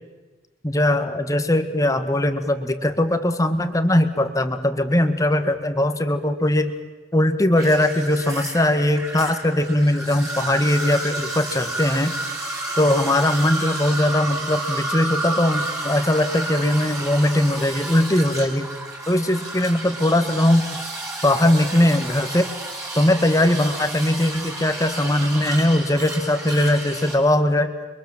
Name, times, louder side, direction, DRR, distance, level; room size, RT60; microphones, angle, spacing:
voice 1, 0.6-6.8 7.1-12.1 12.8-18.7 19.1-20.8 21.2-22.5 22.9-27.7, left 1 dB, 20° left, 8 dB, 1.7 m, -20 dB
sound 1, 7.6-27.2, right 2 dB, 15° right, 6.4 m, -31 dB
29.0 x 24.0 x 7.4 m, 1.3 s
head